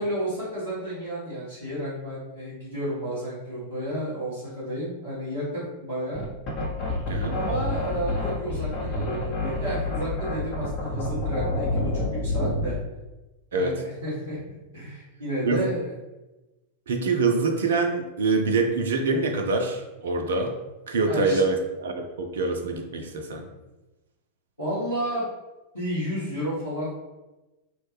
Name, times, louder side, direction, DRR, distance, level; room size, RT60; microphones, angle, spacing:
voice 1, 0.0-6.3 7.3-11.9 12.2-12.7 13.5-15.9 21.0-21.4 24.6-25.2 25.7-26.9, right 1 dB, 90° left, -14 dB, 1.4 m, -31 dB
sound 1, 6.1-12.8, left 2 dB, 35° left, 0.8 m, -28 dB
voice 2, 16.9-20.5 20.9-23.5, right 3 dB, 65° right, 4 dB, 0.4 m, -25 dB
3.0 x 2.2 x 3.2 m, 1.1 s
figure-of-eight pair, 90°, 0 cm